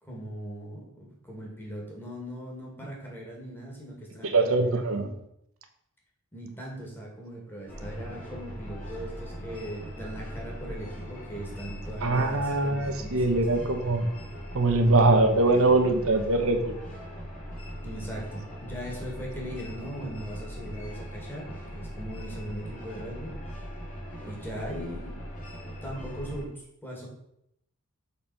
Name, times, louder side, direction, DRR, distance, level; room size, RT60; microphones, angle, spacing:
voice 1, 0.0-5.2 6.3-13.7 17.8-23.4 24.2-25.2 25.8-27.1, equal, 10° left, -3 dB, 2.2 m, -39 dB
voice 2, 4.2-5.1 12.0-14.1 14.5-16.8, right 2 dB, 70° right, 6 dB, 1.1 m, -23 dB
sound 1, 7.7-26.4, equal, 35° left, 3.3 m, -40 dB
7.1 x 4.2 x 5.8 m, 0.76 s
head